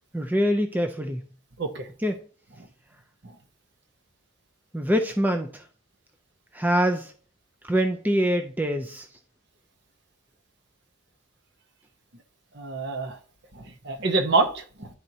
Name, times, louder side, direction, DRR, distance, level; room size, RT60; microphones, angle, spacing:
voice 1, 0.1-1.2 2.0-2.1 4.7-5.6 6.5-7.1 7.6-9.1, equal, 10° right, 0.4 m, -24 dB
voice 2, 12.6-13.2 13.5-14.9, right 3 dB, 55° right, 0.8 m, -26 dB
10.5 x 4.3 x 2.7 m
head